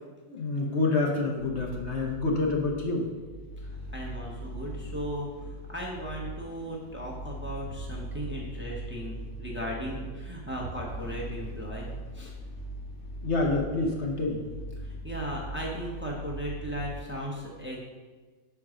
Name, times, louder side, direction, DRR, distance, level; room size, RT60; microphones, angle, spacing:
voice 1, 0.3-3.1 13.2-14.5, left 3 dB, 55° left, 0 dB, 1.1 m, -27 dB
sound 1, 1.4-17.0, right 1 dB, 90° left, 1.5 m, -40 dB
voice 2, 3.6-11.9 12.1-12.3 14.8-17.8, equal, 10° right, -3 dB, 0.8 m, -37 dB
6.0 x 4.7 x 5.0 m, 1.4 s
omnidirectional pair, 1.5 m